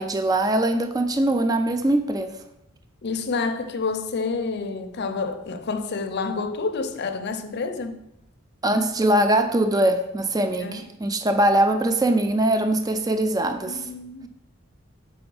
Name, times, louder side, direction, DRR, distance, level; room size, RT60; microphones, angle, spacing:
voice 1, 0.0-2.4 8.6-13.9, right 1 dB, 20° right, 0.4 m, -22 dB
voice 2, 3.0-8.0 10.6-10.8 13.7-14.3, left 4 dB, 55° left, 0.6 m, -28 dB
5.2 x 4.9 x 6.2 m
head